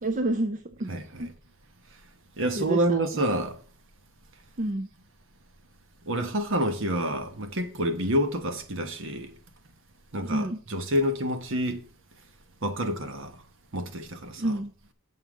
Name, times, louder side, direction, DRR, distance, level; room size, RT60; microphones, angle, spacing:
voice 1, 0.0-1.3 2.5-3.0 4.6-4.9 10.2-10.6 14.4-14.7, right 1 dB, 40° right, 0.6 m, -29 dB
voice 2, 0.9-1.3 2.4-3.6 6.1-9.3 10.1-11.8 12.6-13.4 13.7-14.5, right 1 dB, 65° right, 1.2 m, -28 dB
7.8 x 5.6 x 6.3 m
head